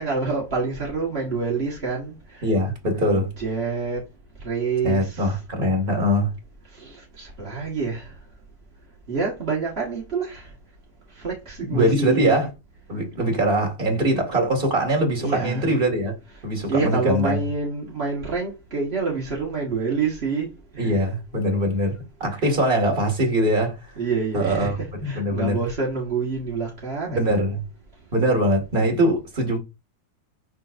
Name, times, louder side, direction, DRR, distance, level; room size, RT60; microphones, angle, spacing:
voice 1, 0.0-2.5 3.0-4.0 4.4-5.4 6.7-8.1 9.1-10.5 11.1-12.4 15.2-15.8 16.3-16.4 16.7-21.0 22.3-22.5 23.9-27.4, right 4 dB, 40° right, 0.9 m, -27 dB
voice 2, 2.4-3.3 4.8-6.3 11.7-12.5 12.9-16.1 16.4-17.4 20.8-23.9 24.3-25.6 27.1-27.6 28.1-29.6, right 1 dB, 20° right, 1.6 m, -22 dB
11.5 x 3.8 x 2.6 m
omnidirectional pair, 3.7 m